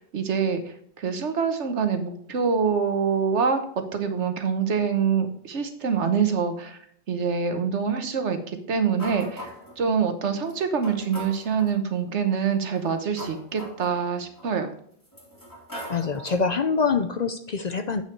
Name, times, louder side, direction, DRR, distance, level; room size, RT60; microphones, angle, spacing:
voice 1, 0.0-6.8 7.1-14.7, right 6 dB, 75° right, 7 dB, 1.4 m, -25 dB
sound 1, 9.0-9.8 10.5-10.6 10.8-11.8 12.6-14.5 15.0-16.5, right 1 dB, 15° left, 2.6 m, -40 dB
voice 2, 15.9-18.0, left 5 dB, 50° left, 8 dB, 0.5 m, -25 dB
8.6 x 5.9 x 4.5 m, 0.65 s
omnidirectional pair, 1.2 m